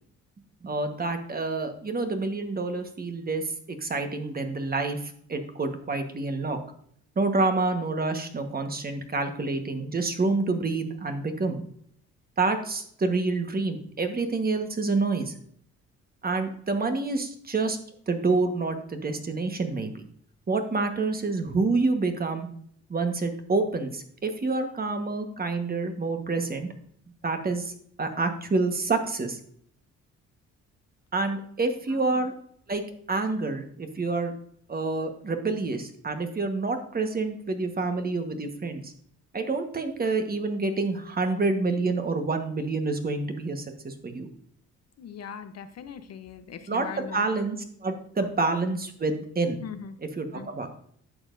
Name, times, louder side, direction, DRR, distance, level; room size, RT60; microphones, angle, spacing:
voice 1, 0.6-6.6 7.1-11.6 12.4-15.3 16.2-17.8 18.1-20.0 20.5-22.5 22.9-26.7 27.2-27.7 28.0-29.4 31.1-32.3 32.7-34.3 34.7-38.9 39.3-44.3 46.7-49.6 50.2-50.7, right 3 dB, 30° right, 6 dB, 1.4 m, -28 dB
voice 2, 31.9-32.3 45.0-47.2 48.2-48.3 49.6-50.0 50.3-50.5, left 7 dB, 60° left, 10 dB, 0.8 m, -40 dB
11.0 x 7.2 x 2.6 m, 0.64 s
cardioid pair, 90°, 30 cm